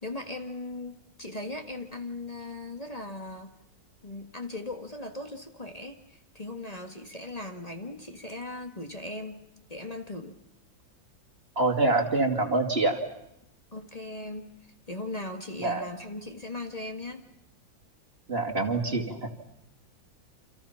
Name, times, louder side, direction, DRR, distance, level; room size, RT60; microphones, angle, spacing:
voice 1, 0.0-3.5 4.0-9.4 9.7-10.4 13.7-14.5 14.9-17.2, left 2 dB, 20° left, 5 dB, 1.7 m, -38 dB
voice 2, 11.6-13.0 15.6-15.8 18.3-19.3, right 2 dB, 30° right, 3 dB, 2.6 m, -25 dB
28.5 x 27.0 x 5.8 m, 0.83 s
omnidirectional pair, 2.1 m